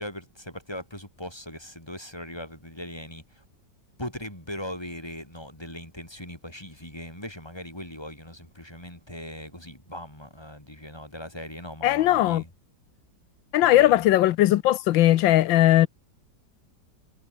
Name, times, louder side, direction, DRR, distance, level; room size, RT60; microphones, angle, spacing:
voice 1, 0.0-3.4 4.0-12.5 13.6-14.1, left 1 dB, 10° left, 6.7 m, -39 dB
voice 2, 11.8-12.4 13.5-15.9, left 14 dB, 90° left, 1.5 m, -19 dB
omnidirectional pair, 2.0 m